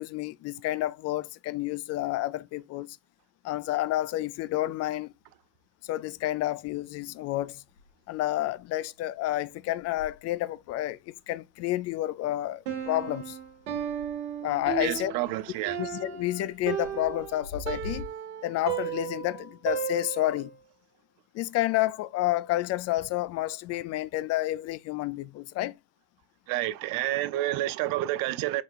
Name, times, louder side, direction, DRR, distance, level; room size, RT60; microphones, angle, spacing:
voice 1, 0.0-3.0 3.4-5.1 5.8-7.6 8.1-13.4 14.4-15.1 15.8-18.1 18.4-20.5 21.3-25.8, left 15 dB, 40° left, 0.4 m, -30 dB
sound 1, 5.0-6.0 6.3-18.0, left 1 dB, 85° left, 2.9 m, -49 dB
Piano, 12.7-20.5, right 8 dB, 85° right, 1.3 m, -34 dB
voice 2, 14.8-15.8 26.5-28.6, right 15 dB, 60° right, 0.6 m, -29 dB
5.2 x 2.3 x 4.4 m
supercardioid pair, 90°, 40 cm